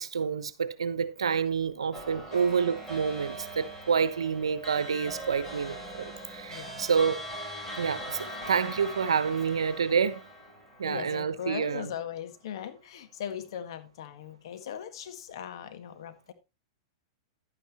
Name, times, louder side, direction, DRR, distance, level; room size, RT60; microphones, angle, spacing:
voice 1, 0.0-7.2 7.8-10.2 10.8-11.9, right 6 dB, 90° right, 0.9 m, -28 dB
sound 1, 1.9-11.6, right 1 dB, 15° left, 7.3 m, -41 dB
voice 2, 6.5-6.9 10.8-16.3, left 9 dB, 65° left, 1.6 m, -39 dB
11.0 x 9.3 x 2.9 m
hypercardioid pair, 115°, 3 cm